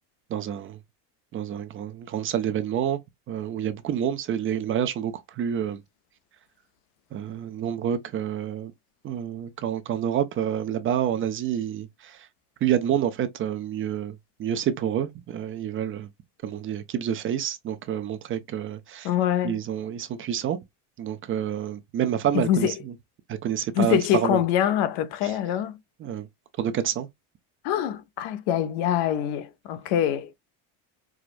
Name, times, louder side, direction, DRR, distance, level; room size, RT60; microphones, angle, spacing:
voice 1, 0.3-0.8 1.3-3.0 3.3-5.8 7.1-8.7 9.0-12.3 12.6-16.1 16.4-19.1 19.4-20.6 21.0-22.9 23.3-24.4 25.2-25.4 26.0-26.3 26.6-27.1, right 9 dB, 30° right, 0.4 m, -28 dB
voice 2, 19.0-19.6 22.3-22.7 23.8-25.8 27.6-30.3, left 10 dB, 75° left, 0.6 m, -24 dB
4.7 x 2.0 x 2.4 m
cardioid pair, 145°, 42 cm